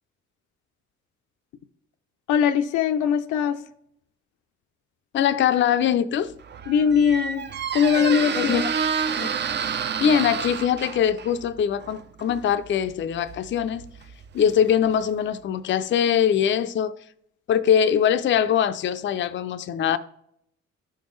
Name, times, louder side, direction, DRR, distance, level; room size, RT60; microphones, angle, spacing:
voice 1, 2.3-3.6 6.7-8.6, left 7 dB, 90° left, 0.6 m, -21 dB
voice 2, 5.1-6.3 8.3-8.6 9.2-9.3 10.0-13.8 14.3-16.9 17.5-20.0, left 9 dB, 40° left, 0.4 m, -22 dB
Squeak, 6.3-15.1, right 7 dB, 35° right, 0.5 m, -30 dB
11.5 x 4.5 x 3.1 m
cardioid pair, 90°, 30 cm